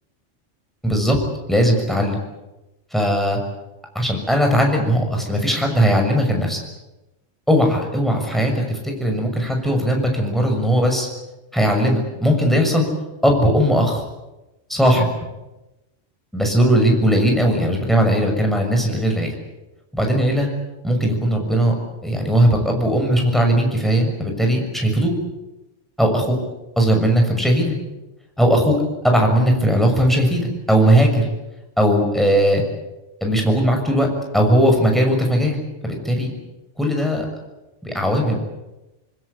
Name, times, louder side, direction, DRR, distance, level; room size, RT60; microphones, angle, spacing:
voice 1, 0.8-1.2 1.5-2.2 2.9-3.4 3.9-6.6 7.5-11.1 11.5-12.9 13.2-14.0 14.7-15.1 16.3-19.3 19.9-20.5 20.8-21.7 22.0-25.1 26.0-26.4 26.8-27.8 28.4-28.8 29.0-31.2 31.8-32.6 33.2-34.1 34.3-35.6 35.8-36.3 36.8-37.3 37.8-38.4, equal, ahead, 2 dB, 6.4 m, -18 dB
27.5 x 20.5 x 8.3 m, 1.0 s
omnidirectional pair, 1.3 m